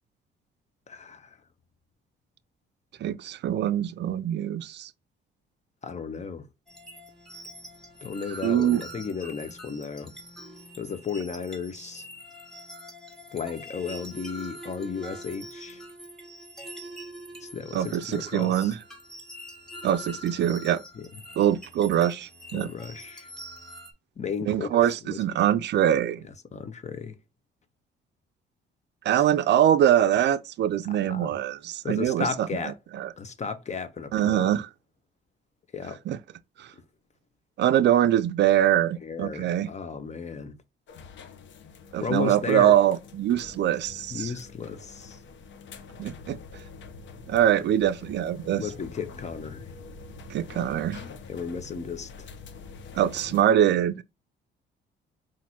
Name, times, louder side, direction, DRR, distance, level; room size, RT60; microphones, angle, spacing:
voice 1, 0.9-1.4 5.8-6.5 8.0-10.1 10.8-12.1 13.3-15.8 17.4-18.7 21.0-21.1 22.5-23.3 24.2-25.2 26.5-27.2 29.1-29.2 31.0-31.4 31.8-32.8 33.2-34.5 35.7-36.0 39.0-40.6 42.0-42.8 44.1-45.2 48.6-49.6 51.3-52.3, left 5 dB, 35° left, 0.7 m, -34 dB
voice 2, 3.0-4.9 8.4-8.8 17.7-18.7 19.8-20.8 21.4-22.7 24.5-26.2 29.1-32.5 32.9-33.1 34.1-34.7 36.1-36.2 36.6-36.7 37.6-39.7 41.9-44.3 46.0-46.4 47.3-48.6 50.3-51.0 52.9-54.0, right 11 dB, 60° right, 0.4 m, -23 dB
sound 1, 6.7-23.9, equal, ahead, 1.7 m, -44 dB
sound 2, 40.9-53.4, left 4 dB, 70° left, 0.8 m, -45 dB
5.8 x 2.5 x 2.8 m
cardioid pair, 90°, 20 cm